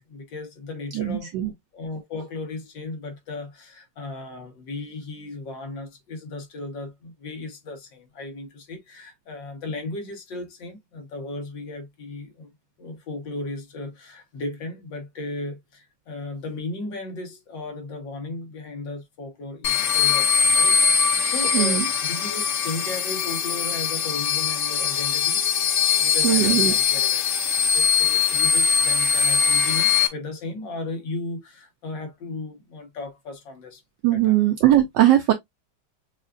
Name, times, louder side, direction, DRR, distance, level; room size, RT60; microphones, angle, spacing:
voice 1, 0.0-12.5 12.8-25.6 25.9-33.8 34.1-34.4, left 3 dB, 65° left, 1.8 m, -36 dB
voice 2, 0.9-1.5 21.5-21.9 26.2-26.7 34.0-35.3, right 13 dB, 70° right, 1.2 m, -19 dB
sound 1, 19.6-30.1, left 6 dB, 85° left, 0.6 m, -21 dB
6.3 x 2.5 x 2.4 m
omnidirectional pair, 2.2 m